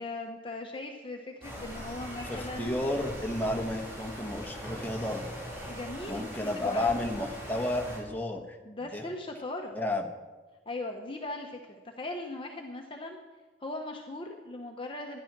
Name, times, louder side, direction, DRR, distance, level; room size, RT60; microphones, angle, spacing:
voice 1, 0.0-2.8 5.7-7.1 8.6-9.7 10.7-13.2 13.6-15.2, left 2 dB, 25° left, 2 dB, 0.8 m, -39 dB
sound 1, 1.4-8.0, equal, 15° right, 5.3 m, -41 dB
voice 2, 2.3-5.3 6.1-8.6 8.8-9.1 9.7-10.1, left 1 dB, 10° left, 2 dB, 1.1 m, -32 dB
13.0 x 10.5 x 6.0 m, 1.3 s
head